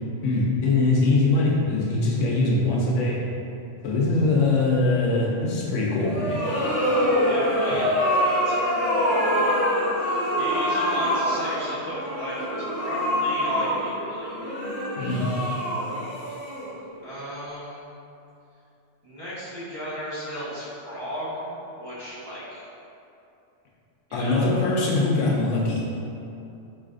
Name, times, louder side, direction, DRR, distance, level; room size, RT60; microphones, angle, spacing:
voice 1, 0.2-3.2 3.8-6.4 15.0-15.3 24.1-25.8, left 2 dB, 80° left, -4 dB, 0.9 m, -22 dB
sound 1, 6.0-17.0, equal, 15° left, 0.7 m, -25 dB
voice 2, 7.2-9.0 10.0-12.5 12.8-14.4 17.0-17.9 19.0-22.7 24.1-24.6, equal, 20° right, -14 dB, 1.1 m, -35 dB
4.1 x 2.7 x 2.5 m, 2.7 s
omnidirectional pair, 1.3 m